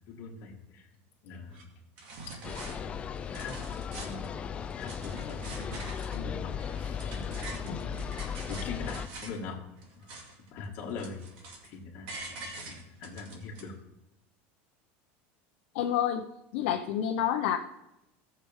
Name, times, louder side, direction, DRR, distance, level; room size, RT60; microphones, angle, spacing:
voice 1, 0.1-0.9 1.2-1.7 2.3-2.7 3.3-3.6 3.9-4.4 4.7-5.7 6.0-9.6 10.0-10.1 10.5-11.2 11.6-13.7, left 4 dB, 35° left, -2 dB, 2.0 m, -42 dB
sound 1, 1.5-1.6 2.0-2.8 3.2-4.3 4.7-6.2 6.6-9.4 9.8-10.5 10.8-11.7 12.1-13.6, right 3 dB, 60° right, 2.3 m, -45 dB
sound 2, 2.4-9.1, left 7 dB, 20° left, 0.4 m, -37 dB
voice 2, 15.7-16.2 16.5-17.6, left 10 dB, 65° left, 3 dB, 0.7 m, -28 dB
18.0 x 6.8 x 3.6 m, 0.89 s
supercardioid pair, 170°, 6 cm